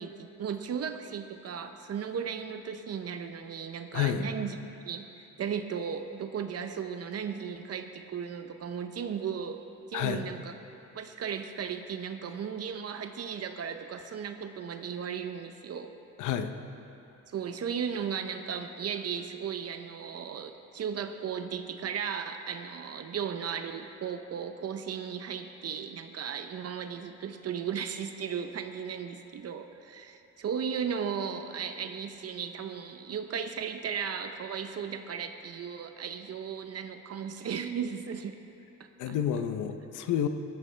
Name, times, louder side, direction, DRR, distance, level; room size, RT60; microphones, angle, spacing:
voice 1, 0.0-4.6 4.9-9.6 9.9-10.5 10.9-15.9 17.3-38.4 39.1-39.2, right 7 dB, 55° right, 7 dB, 0.8 m, -36 dB
voice 2, 3.9-4.2 9.9-10.3 16.2-16.5 39.0-40.3, left 9 dB, 80° left, 8 dB, 0.7 m, -29 dB
16.5 x 14.0 x 3.3 m, 2.8 s
cardioid pair, 90°, 30 cm